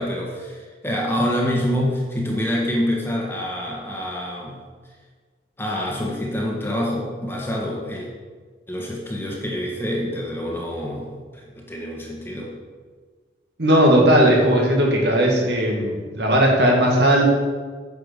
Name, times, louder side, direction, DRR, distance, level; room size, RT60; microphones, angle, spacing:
voice 1, 0.0-4.6 5.6-8.1 8.7-12.5, equal, 10° left, -2 dB, 1.5 m, -26 dB
voice 2, 13.6-17.2, equal, 70° right, -1 dB, 1.9 m, -17 dB
9.2 x 7.0 x 5.2 m, 1.5 s
head